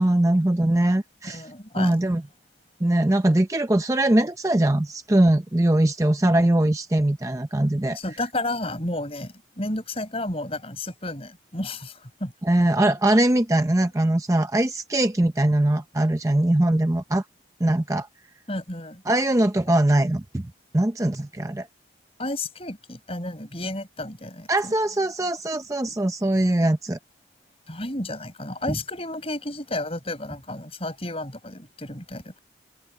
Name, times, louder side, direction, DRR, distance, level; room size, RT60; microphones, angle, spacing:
voice 1, 0.0-1.4 1.8-2.2 2.8-8.0 12.4-17.2 17.6-18.1 19.1-20.5 20.7-21.7 24.5-27.0 28.7-28.8, right 1 dB, 15° right, 0.6 m, -21 dB
voice 2, 1.2-2.2 7.9-12.3 18.5-19.0 22.2-24.7 27.7-32.4, left 2 dB, 30° left, 7.2 m, -32 dB
head